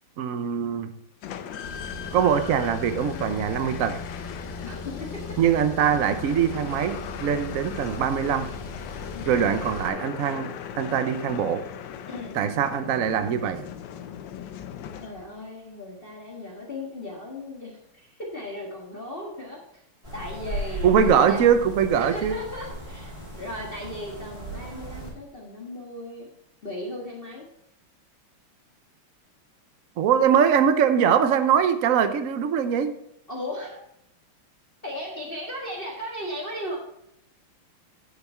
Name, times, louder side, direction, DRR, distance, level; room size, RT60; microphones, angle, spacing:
voice 1, 0.2-0.9 2.1-4.0 5.4-8.5 9.3-11.6 12.3-13.6 20.8-22.4 30.0-33.0, right 8 dB, 75° right, 10 dB, 0.7 m, -22 dB
sound 1, 1.2-15.5, left 9 dB, 70° left, 1.3 m, -38 dB
Car, 1.6-9.9, left 3 dB, 85° left, 0.3 m, -39 dB
voice 2, 4.6-5.2 9.1-9.5 12.0-12.3 15.0-19.8 20.1-20.9 21.3-21.4 21.9-26.3 26.6-27.5 30.2-30.5 33.3-33.8 34.8-36.8, left 1 dB, 30° left, -3 dB, 1.6 m, -36 dB
sound 2, 20.0-25.1, right 1 dB, 15° right, 3.3 m, -36 dB
10.0 x 7.3 x 4.4 m, 0.77 s
omnidirectional pair, 2.4 m